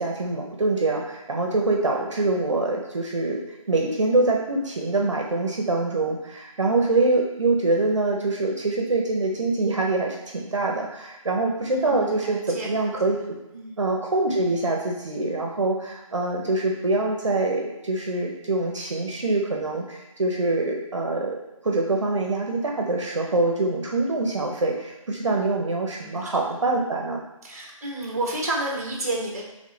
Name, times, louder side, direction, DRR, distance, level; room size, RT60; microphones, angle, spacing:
voice 1, 0.0-3.4 3.7-13.2 13.8-21.4 21.6-27.2, right 2 dB, 60° right, 0 dB, 0.7 m, -24 dB
voice 2, 11.7-12.9 13.5-13.8 25.2-25.4 26.0-26.4 27.4-29.5, right 2 dB, 30° right, -2 dB, 0.9 m, -31 dB
3.6 x 3.2 x 3.8 m, 0.95 s
figure-of-eight pair, 175°, 18 cm